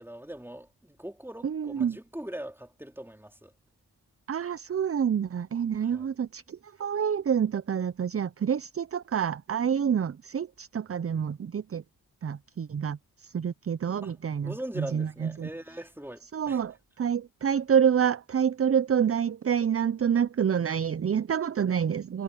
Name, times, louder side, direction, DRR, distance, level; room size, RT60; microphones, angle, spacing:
voice 1, 0.0-3.5 5.8-6.1 14.0-14.1 14.4-16.6, right 1 dB, 5° right, 3.9 m, -41 dB
voice 2, 1.4-2.0 4.3-11.8 12.2-15.5 16.3-22.2, right 8 dB, 35° right, 0.7 m, -28 dB
supercardioid pair, 45°, 39 cm